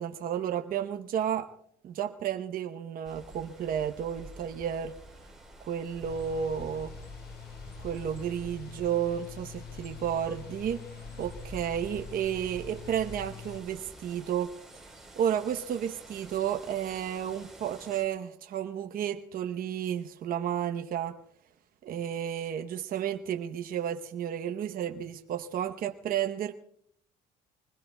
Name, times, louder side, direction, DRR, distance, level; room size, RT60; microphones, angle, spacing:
voice 1, 0.0-1.5 1.8-4.9 5.6-6.9 7.8-10.8 11.2-14.5 15.2-21.2 21.8-26.5, right 9 dB, 55° right, 0.9 m, -32 dB
sound 1, 3.0-18.0, right 1 dB, ahead, 4.0 m, -48 dB
sound 2, 6.0-13.6, left 10 dB, 70° left, 0.7 m, -46 dB
25.0 x 20.5 x 2.3 m
cardioid pair, 110°, 17 cm